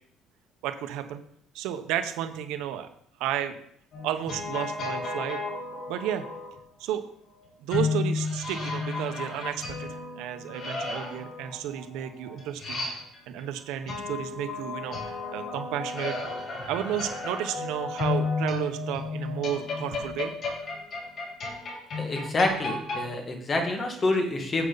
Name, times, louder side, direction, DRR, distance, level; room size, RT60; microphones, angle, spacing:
voice 1, 0.6-1.2 1.5-2.9 3.2-3.6 4.0-5.4 5.9-6.3 6.8-7.0 7.6-16.2 16.7-20.3, right 10 dB, 80° right, 9 dB, 1.0 m, -32 dB
sound 1, 3.9-6.5 7.7-13.4 13.9-23.0, left 3 dB, 45° left, 5.1 m, -33 dB
voice 2, 22.0-24.7, left 2 dB, 25° left, 4 dB, 1.9 m, -27 dB
10.5 x 8.0 x 4.1 m, 0.67 s
cardioid pair, 135°, 0 cm